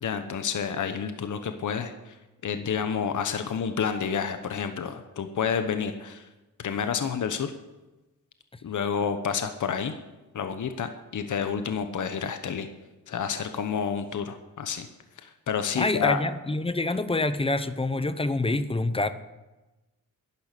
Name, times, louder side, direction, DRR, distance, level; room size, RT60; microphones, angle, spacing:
voice 1, 0.0-2.1 2.4-6.3 6.6-7.5 8.6-9.9 10.3-12.7 13.1-14.9 15.2-16.2, left 7 dB, 60° left, 8 dB, 1.0 m, -29 dB
voice 2, 15.8-19.1, left 2 dB, 15° left, 12 dB, 0.8 m, -26 dB
11.0 x 11.0 x 8.3 m, 1.1 s
wide cardioid pair, 115°, 35 cm